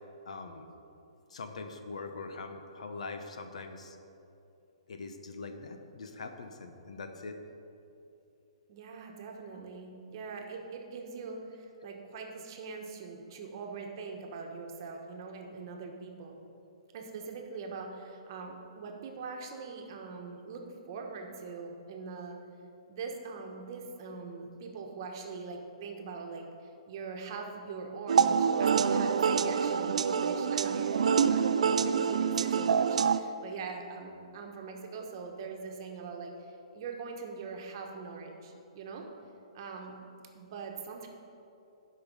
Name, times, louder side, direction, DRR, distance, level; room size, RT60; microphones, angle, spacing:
voice 1, 0.3-0.7 1.3-4.0 4.9-7.4 9.5-9.6 11.8-11.9, left 3 dB, 80° left, 6 dB, 1.0 m, -42 dB
voice 2, 8.7-16.3 16.9-22.4 22.9-31.0 31.3-39.0 39.5-40.0 40.3-41.1, right 4 dB, 40° right, 2 dB, 1.2 m, -42 dB
sound 1, 28.1-33.2, right 6 dB, 75° right, 0.4 m, -26 dB
12.0 x 5.5 x 5.5 m, 2.8 s
hypercardioid pair, 160°, 4 cm